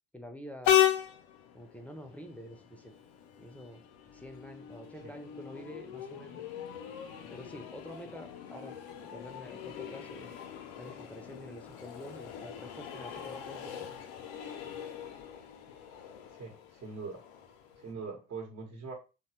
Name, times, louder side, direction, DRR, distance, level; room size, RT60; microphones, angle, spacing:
voice 1, 0.1-0.8 1.5-2.9 3.4-3.8 4.1-6.5 7.3-8.7 9.1-10.4 10.8-13.9, equal, 5° left, 5 dB, 0.6 m, -47 dB
Train, 0.6-17.9, left 11 dB, 75° left, 0.6 m, -36 dB
voice 2, 16.3-17.2 17.8-18.9, right 4 dB, 50° right, 1 dB, 0.9 m, -42 dB
2.9 x 2.2 x 2.8 m, 0.31 s
hypercardioid pair, 65°, 31 cm